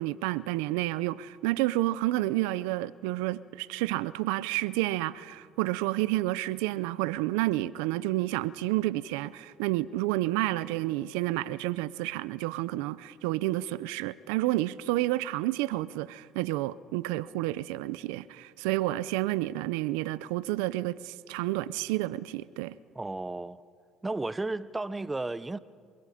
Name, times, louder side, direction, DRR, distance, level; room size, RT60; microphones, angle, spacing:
voice 1, 0.0-22.8, right 17 dB, 90° right, 0.5 m, -30 dB
voice 2, 22.9-23.6 24.0-25.6, right 2 dB, 15° right, 0.7 m, -33 dB
27.5 x 24.0 x 5.0 m
supercardioid pair, 85°, 0 cm